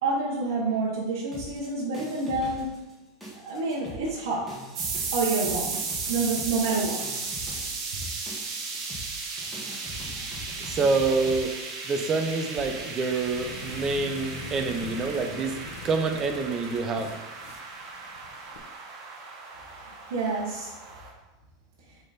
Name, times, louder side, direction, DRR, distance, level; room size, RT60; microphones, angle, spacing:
voice 1, 0.0-2.7 3.4-4.5 5.1-5.8 6.1-7.2 19.9-20.7, right 3 dB, 75° right, -4 dB, 1.2 m, -28 dB
sound 1, 1.3-2.9 3.2-11.4, equal, 5° right, 1.5 m, -42 dB
sound 2, 4.7-21.1, right 4 dB, 55° right, 1.4 m, -35 dB
voice 2, 10.6-11.5 11.8-15.6 15.8-17.1, right 4 dB, 20° right, 6 dB, 0.6 m, -27 dB
sound 3, 12.1-18.6, left 4 dB, 60° left, 1.0 m, -43 dB
6.9 x 3.7 x 4.2 m, 1.1 s
supercardioid pair, 160°, 2 cm